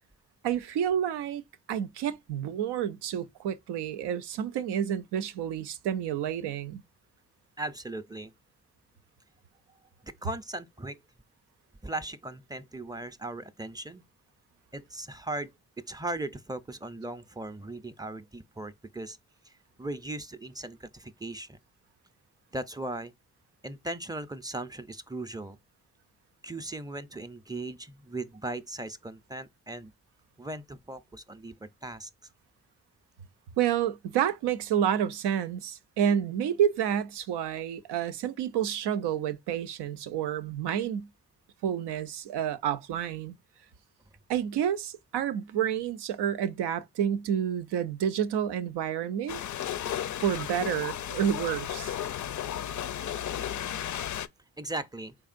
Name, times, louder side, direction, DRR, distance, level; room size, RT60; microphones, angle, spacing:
voice 1, 0.4-1.4 1.7-6.8 33.6-41.1 41.6-43.4 44.3-49.4 50.2-51.9, right 9 dB, 85° right, 0.5 m, -29 dB
voice 2, 7.6-8.3 10.0-11.0 11.8-14.0 14.7-15.5 15.9-19.2 19.4-21.6 22.5-23.1 23.6-25.6 26.4-29.9 30.4-32.3 54.6-55.2, right 2 dB, 10° right, 0.5 m, -38 dB
sound 1, 49.3-54.3, left 10 dB, 50° left, 0.4 m, -34 dB
3.6 x 3.4 x 2.5 m
supercardioid pair, 45°, 39 cm